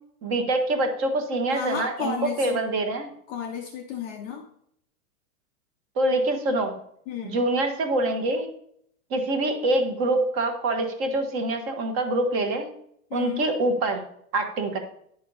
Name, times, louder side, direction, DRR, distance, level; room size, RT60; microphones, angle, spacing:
voice 1, 0.2-3.1 6.0-6.8 7.2-8.5 9.1-12.7 13.1-14.1 14.3-14.8, right 2 dB, 30° right, 6 dB, 1.2 m, -25 dB
voice 2, 1.5-2.6 3.3-4.5 7.1-7.4 13.1-13.5, left 7 dB, 20° left, 1 dB, 0.5 m, -32 dB
9.5 x 5.5 x 3.9 m, 0.70 s
supercardioid pair, 155°, 44 cm